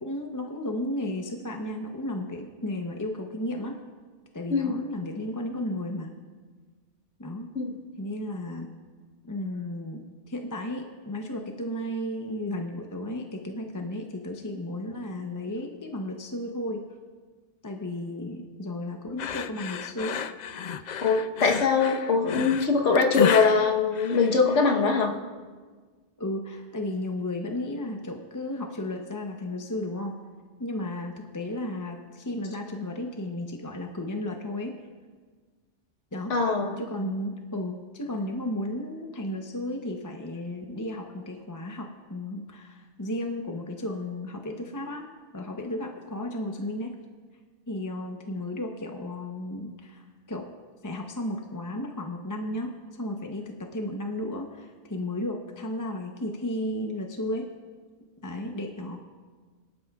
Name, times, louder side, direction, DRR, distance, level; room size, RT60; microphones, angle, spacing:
voice 1, 0.0-3.8 4.3-6.1 7.2-7.5 8.0-8.7 9.2-16.8 17.6-20.2 26.2-30.2 30.6-34.8 36.1-36.3 36.8-45.1 45.3-47.0 47.7-50.5 50.8-57.5 58.2-59.0, left 1 dB, 20° left, 3 dB, 0.6 m, -34 dB
sound 1, 19.2-24.7, left 7 dB, 60° left, 0.4 m, -31 dB
voice 2, 21.0-25.1 36.3-36.7, left 4 dB, 85° left, 1 dB, 1.4 m, -22 dB
23.0 x 11.5 x 2.3 m, 1.5 s
omnidirectional pair, 1.2 m